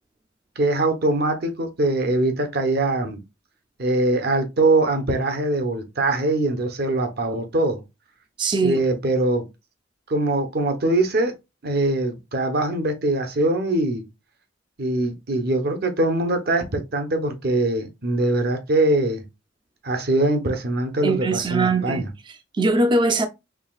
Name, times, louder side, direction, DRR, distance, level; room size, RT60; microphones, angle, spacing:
voice 1, 0.6-3.2 3.8-7.8 8.6-9.4 10.1-11.3 11.6-14.1 14.8-19.2 19.8-22.1, right 2 dB, 55° right, 0.9 m, -22 dB
voice 2, 8.4-8.8 21.0-23.3, right 3 dB, 25° right, 0.4 m, -22 dB
4.8 x 3.3 x 2.3 m
head